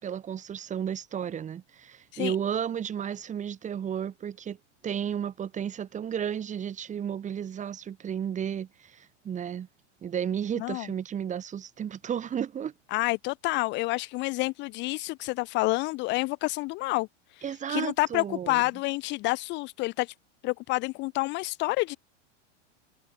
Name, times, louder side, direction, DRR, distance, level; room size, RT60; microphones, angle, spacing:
voice 1, 0.0-4.6 4.8-9.7 10.0-12.7 17.4-18.6, right 8 dB, 20° right, 6.0 m, -33 dB
voice 2, 12.9-17.1 17.3-17.4 17.7-20.1 20.4-22.0, left 22 dB, 30° left, 0.8 m, -28 dB
supercardioid pair, 150°, 36 cm